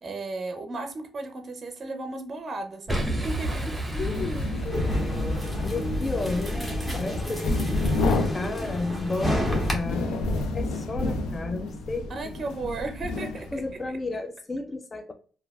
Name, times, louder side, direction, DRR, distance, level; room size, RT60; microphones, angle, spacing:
voice 1, 0.0-3.7 6.8-7.0 12.1-13.6, right 3 dB, 40° right, 0.5 m, -35 dB
Boom, 2.9-5.9, right 1 dB, 10° right, 0.8 m, -31 dB
sound 1, 3.8-13.8, left 2 dB, 85° left, 0.5 m, -30 dB
voice 2, 3.9-4.9 5.2-5.3 5.6-6.6 6.9-10.2 10.5-12.2 13.2-15.1, left 3 dB, 30° left, 0.4 m, -33 dB
sound 2, 4.7-9.7, equal, 15° left, 1.0 m, -31 dB
3.2 x 2.3 x 2.3 m
cardioid pair, 90°, 0 cm